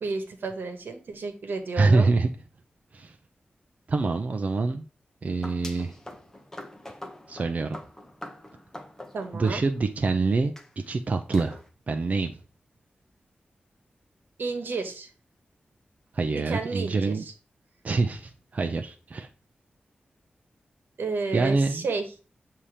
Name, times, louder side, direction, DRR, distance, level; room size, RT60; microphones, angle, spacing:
voice 1, 0.0-2.1 9.1-9.6 14.4-15.1 16.5-17.3 21.0-22.0, right 3 dB, 90° right, 6 dB, 1.1 m, -31 dB
voice 2, 1.8-2.3 2.9-3.1 3.9-4.8 5.2-5.9 7.3-7.8 9.3-10.5 10.9-11.6 11.9-12.3 16.1-17.2 17.8-19.3 21.3-21.9, right 3 dB, 45° right, 5 dB, 0.5 m, -25 dB
sound 1, 5.3-10.1 10.6-10.7 11.3-11.7, left 1 dB, 15° left, 0.7 m, -44 dB
7.2 x 2.8 x 4.8 m, 0.36 s
wide cardioid pair, 140°, 3 cm